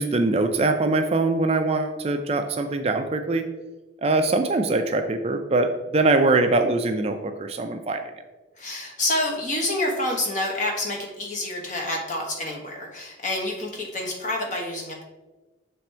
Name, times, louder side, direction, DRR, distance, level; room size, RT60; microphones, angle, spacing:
voice 1, 0.0-3.5 4.0-8.0, right 2 dB, 35° right, 6 dB, 0.4 m, -22 dB
voice 2, 8.6-15.0, left 1 dB, 40° left, -1 dB, 1.3 m, -28 dB
7.3 x 3.5 x 4.4 m, 1.2 s
head